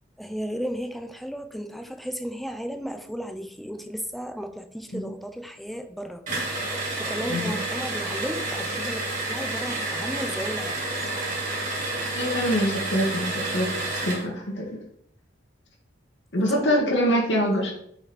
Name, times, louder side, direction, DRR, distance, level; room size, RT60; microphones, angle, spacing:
voice 1, 0.2-6.3 6.5-10.9 16.4-17.4 17.6-17.7, equal, ahead, 7 dB, 0.5 m, -35 dB
sound 1, 6.3-14.3, right 2 dB, 40° right, 2.1 m, -30 dB
voice 2, 7.3-7.6 12.0-13.7 14.0-14.8 16.3-17.7, equal, 70° left, -1 dB, 1.5 m, -24 dB
5.1 x 5.0 x 4.1 m, 0.68 s
head